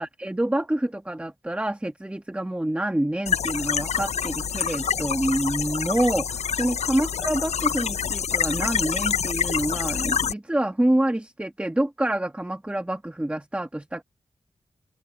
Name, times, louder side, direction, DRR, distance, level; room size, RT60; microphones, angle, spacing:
voice 1, 0.0-14.0, right 1 dB, 10° right, 1.4 m, -27 dB
sound 1, 3.3-10.3, left 7 dB, 70° left, 0.4 m, -27 dB
open air
wide cardioid pair, 80°, 11 cm